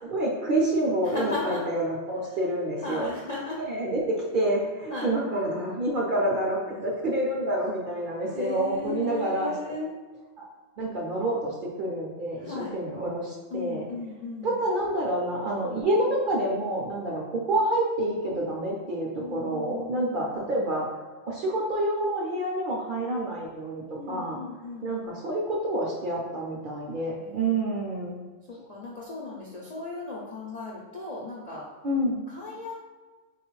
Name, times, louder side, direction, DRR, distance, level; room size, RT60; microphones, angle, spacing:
voice 1, 0.1-3.1 3.6-9.5 10.4-10.5 10.8-13.9 14.4-20.9 21.3-24.4 24.8-28.1 31.8-32.2, right 1 dB, 55° right, -3 dB, 0.6 m, -28 dB
voice 2, 1.0-1.7 2.8-3.6 4.9-5.1 8.3-9.9 12.4-12.8 13.5-14.5 19.1-20.5 24.0-24.9 27.2-27.6 28.7-31.6 32.3-32.7, left 3 dB, 55° left, -5 dB, 0.4 m, -36 dB
4.0 x 2.3 x 3.0 m, 1.3 s
omnidirectional pair, 1.3 m